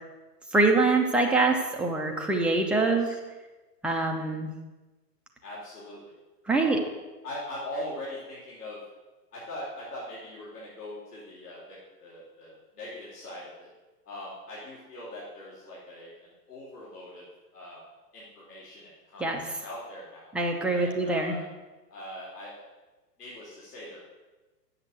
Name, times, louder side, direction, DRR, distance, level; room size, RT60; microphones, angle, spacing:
voice 1, 0.5-3.1 3.8-4.5 6.5-6.8 19.2-19.4 20.3-21.3, right 3 dB, ahead, 1 dB, 0.6 m, -24 dB
voice 2, 2.7-3.1 5.4-6.1 6.5-6.8 7.2-8.8 9.3-13.7 14.0-17.2 17.5-17.8 18.1-20.3 20.7-21.4 21.9-22.7 23.2-24.0, left 1 dB, 70° left, -7 dB, 4.2 m, -41 dB
8.0 x 7.2 x 7.9 m, 1.1 s
figure-of-eight pair, 110°, 49 cm